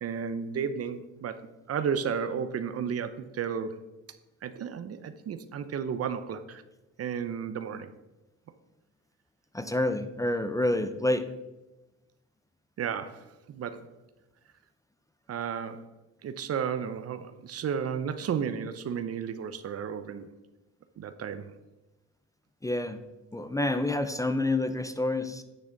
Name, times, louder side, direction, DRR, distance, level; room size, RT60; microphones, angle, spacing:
voice 1, 0.0-3.9 4.4-6.6 7.0-7.9 12.8-13.9 15.3-15.9 16.2-20.3 21.0-21.5, right 7 dB, 50° right, 11 dB, 0.7 m, -33 dB
voice 2, 9.5-11.2 22.6-23.0 23.3-25.4, left 2 dB, 10° left, 10 dB, 0.5 m, -28 dB
9.0 x 6.7 x 3.9 m, 1.0 s
cardioid pair, 90°, 30 cm